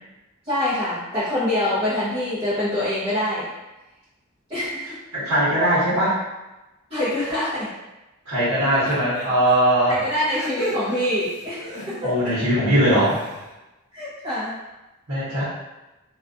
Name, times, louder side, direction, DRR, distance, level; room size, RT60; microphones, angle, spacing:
voice 1, 0.5-3.5 4.5-5.0 6.9-7.7 9.9-12.1 13.9-14.6, left 1 dB, 25° right, -14 dB, 0.7 m, -25 dB
voice 2, 5.1-6.1 8.3-10.0 12.0-13.2 15.1-15.4, right 1 dB, 80° right, -12 dB, 0.9 m, -20 dB
sound 1, 8.8-9.5 10.1-12.3 12.7-13.5, equal, 50° left, 0.8 m, -35 dB
2.3 x 2.3 x 2.5 m, 1.0 s
head